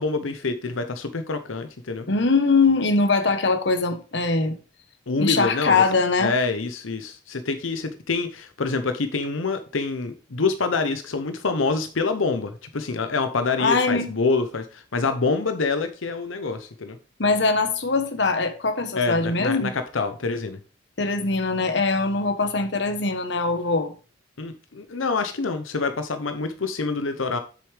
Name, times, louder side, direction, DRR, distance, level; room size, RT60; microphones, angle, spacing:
voice 1, 0.0-2.1 5.1-5.8 6.2-17.0 18.9-20.6 24.4-27.4, left 4 dB, 90° left, 0.8 m, -26 dB
voice 2, 2.1-4.6 5.2-6.3 13.6-14.1 17.2-19.7 21.0-23.9, left 3 dB, 60° left, 1.1 m, -22 dB
7.8 x 6.9 x 3.3 m
head